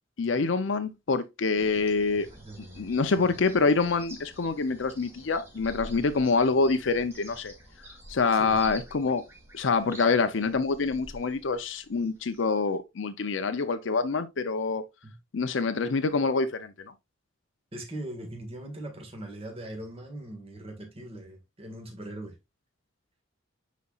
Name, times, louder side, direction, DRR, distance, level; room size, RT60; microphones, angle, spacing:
voice 1, 0.2-2.3 2.8-7.5 8.1-9.2 9.5-14.8 15.3-16.7, left 4 dB, 65° left, 0.6 m, -26 dB
sound 1, 1.5-12.7, equal, 15° right, 2.0 m, -49 dB
voice 2, 2.1-3.4 8.3-8.6 15.0-15.1 17.7-22.4, right 1 dB, 30° right, 1.8 m, -41 dB
9.5 x 4.1 x 2.4 m
head